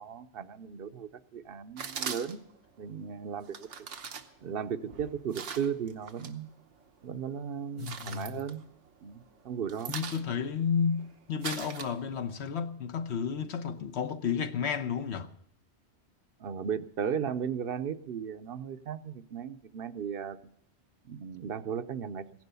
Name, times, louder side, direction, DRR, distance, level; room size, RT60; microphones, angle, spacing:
voice 1, 0.0-2.4 2.8-3.5 4.4-6.5 7.0-8.6 9.0-9.9 16.4-20.4 21.1-22.2, right 7 dB, 60° right, 0.9 m, -36 dB
sound 1, 1.8-2.6 3.4-6.3 6.7-7.3 7.6-9.1 9.4-12.4, right 6 dB, 85° right, 1.3 m, -41 dB
voice 2, 7.8-8.4 9.9-15.3, left 6 dB, 70° left, 1.2 m, -32 dB
16.0 x 10.5 x 6.8 m
omnidirectional pair, 1.2 m